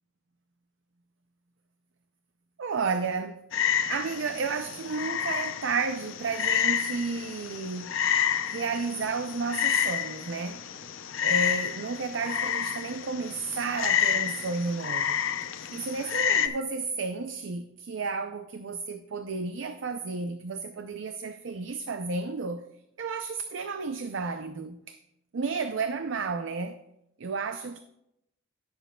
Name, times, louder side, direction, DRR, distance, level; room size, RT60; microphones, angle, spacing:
voice 1, 2.6-3.4 3.9-7.9 8.4-10.6 11.2-15.2 15.7-22.6 23.0-25.0 25.3-26.8 27.2-27.8, right 4 dB, 70° right, 0.5 m, -32 dB
Frog, 3.5-16.5, left 8 dB, 85° left, 0.6 m, -29 dB
16.0 x 7.1 x 2.3 m
head